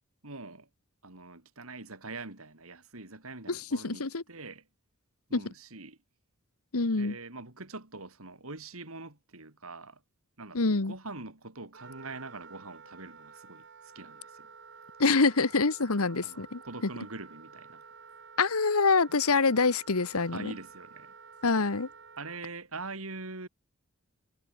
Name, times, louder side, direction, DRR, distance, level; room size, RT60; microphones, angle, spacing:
voice 1, 0.2-0.7 1.0-4.6 5.3-6.0 6.9-10.0 10.4-14.5 16.2-17.8 20.3-21.1 22.2-23.5, right 3 dB, 75° right, 3.7 m, -43 dB
voice 2, 3.5-4.2 5.3-5.4 6.7-7.2 10.5-10.9 15.0-16.6 18.4-20.5 21.4-21.9, left 4 dB, 85° left, 1.3 m, -26 dB
Wind instrument woodwind instrument, 11.7-22.4, right 5 dB, 55° right, 3.4 m, -51 dB
head